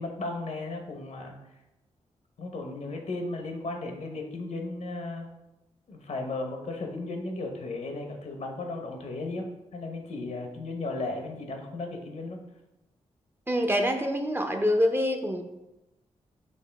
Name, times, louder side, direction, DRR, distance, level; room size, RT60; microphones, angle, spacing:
voice 1, 0.0-1.3 2.4-5.3 5.9-9.5 9.7-12.4, left 2 dB, 65° left, 3 dB, 0.8 m, -35 dB
voice 2, 13.5-15.4, equal, 15° right, 4 dB, 0.6 m, -25 dB
5.7 x 2.7 x 3.3 m, 0.97 s
supercardioid pair, 45°, 13 cm